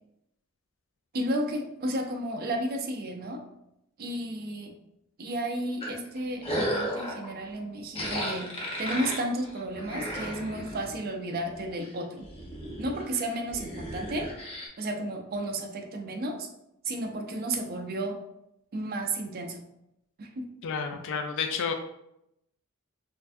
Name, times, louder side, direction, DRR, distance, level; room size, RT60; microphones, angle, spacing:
voice 1, 1.1-3.4 4.0-4.7 5.2-8.5 8.8-12.3 12.8-14.3 14.8-16.5 16.8-18.2 18.7-19.6 20.2-20.5, right 1 dB, 45° right, 3 dB, 0.5 m, -32 dB
sound 1, 5.8-7.3 7.9-11.0 11.4-11.9 12.2-14.7, equal, 25° left, 0.9 m, -34 dB
voice 2, 20.6-21.7, left 6 dB, 60° left, 5 dB, 0.3 m, -30 dB
4.4 x 2.5 x 2.6 m, 0.81 s
head